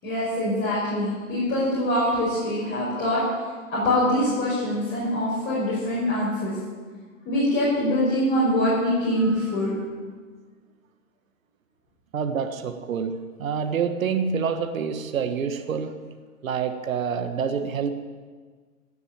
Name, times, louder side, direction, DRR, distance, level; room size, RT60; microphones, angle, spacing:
voice 1, 0.0-3.2 3.7-6.5 7.3-9.7, left 1 dB, 25° left, -8 dB, 5.4 m, -24 dB
voice 2, 9.2-9.6 12.1-16.0 16.4-17.9, right 6 dB, 70° right, 8 dB, 1.4 m, -27 dB
17.5 x 6.7 x 8.8 m, 1.5 s
hypercardioid pair, 120°, 42 cm